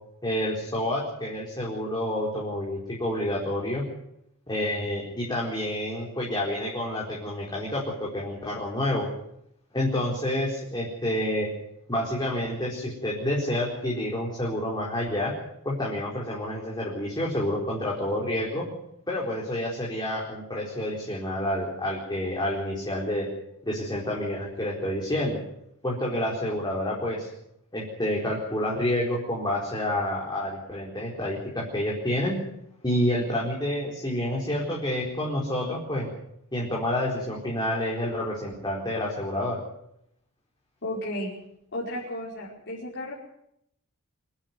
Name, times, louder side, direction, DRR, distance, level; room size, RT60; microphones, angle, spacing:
voice 1, 0.2-3.9 4.5-9.1 9.7-11.5 11.9-15.3 15.6-18.7 19.1-23.3 23.6-25.4 25.8-27.3 27.7-32.4 32.8-36.1 36.5-39.6, left 1 dB, 20° left, -4 dB, 4.4 m, -28 dB
voice 2, 40.8-41.3 41.7-43.1, left 1 dB, 55° left, -5 dB, 5.2 m, -33 dB
26.0 x 11.5 x 9.5 m, 0.78 s
head